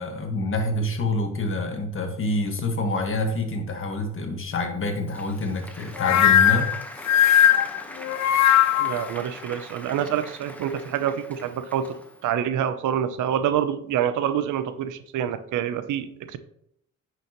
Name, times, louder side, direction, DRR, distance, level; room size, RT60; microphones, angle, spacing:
voice 1, 0.0-6.7, left 2 dB, 45° left, 4 dB, 1.7 m, -27 dB
Applause, 4.7-12.3, equal, 5° left, 1.2 m, -43 dB
sound 1, 6.0-9.1, left 10 dB, 65° left, 0.5 m, -19 dB
voice 2, 8.8-12.0 12.2-16.4, right 9 dB, 80° right, 12 dB, 0.7 m, -26 dB
10.0 x 6.3 x 3.1 m, 0.72 s
cardioid pair, 90°, 30 cm